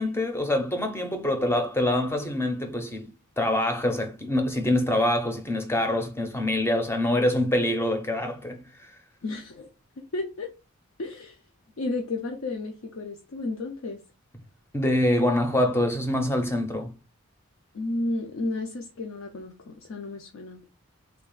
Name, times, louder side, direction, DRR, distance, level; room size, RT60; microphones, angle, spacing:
voice 1, 0.0-3.1 3.4-8.9 14.7-16.9, left 1 dB, 10° left, 0.6 m, -25 dB
voice 2, 9.2-9.7 10.0-10.5 11.0-11.4 11.8-14.0 17.7-20.6, left 2 dB, 70° left, 0.5 m, -32 dB
3.4 x 2.4 x 3.7 m
head